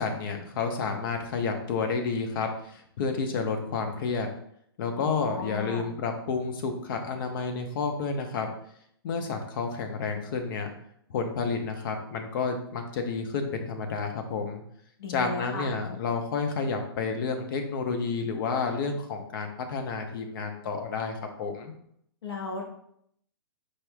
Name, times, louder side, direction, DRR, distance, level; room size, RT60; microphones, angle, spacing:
voice 1, 0.0-4.3 4.8-8.5 9.0-10.7 11.1-14.6 15.1-21.7, left 4 dB, 55° left, 5 dB, 0.8 m, -30 dB
voice 2, 5.0-5.9 15.0-15.7 22.2-22.6, left 3 dB, 90° left, 1 dB, 1.3 m, -36 dB
4.7 x 4.6 x 2.3 m, 0.71 s
hypercardioid pair, 135°, 13 cm